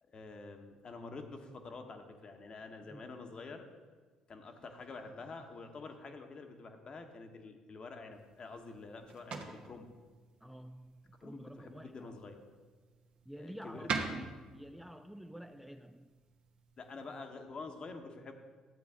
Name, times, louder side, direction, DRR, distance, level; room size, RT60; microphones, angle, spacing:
voice 1, 0.0-3.7 4.3-9.9 11.2-12.4 13.3-13.9 16.8-18.3, left 3 dB, 45° left, 5 dB, 1.2 m, -47 dB
sound 1, 8.1-17.3, right 5 dB, 60° right, 1.1 m, -46 dB
voice 2, 10.4-12.2 13.3-16.1, equal, 5° right, 7 dB, 0.4 m, -49 dB
12.0 x 8.2 x 3.7 m, 1.4 s
hypercardioid pair, 55°, 2 cm